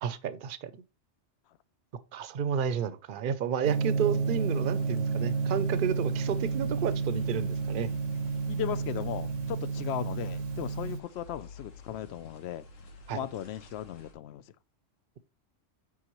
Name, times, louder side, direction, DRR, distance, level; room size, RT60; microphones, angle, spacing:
voice 1, 0.0-0.7 2.1-7.9 13.1-13.3, right 7 dB, 50° right, 0.7 m, -31 dB
Gong, 3.6-11.0, right 5 dB, 75° right, 0.9 m, -31 dB
sound 1, 4.2-14.1, left 4 dB, 85° left, 1.6 m, -51 dB
voice 2, 8.5-12.7 13.1-14.4, left 11 dB, 65° left, 0.8 m, -37 dB
9.7 x 3.9 x 3.0 m
omnidirectional pair, 1.3 m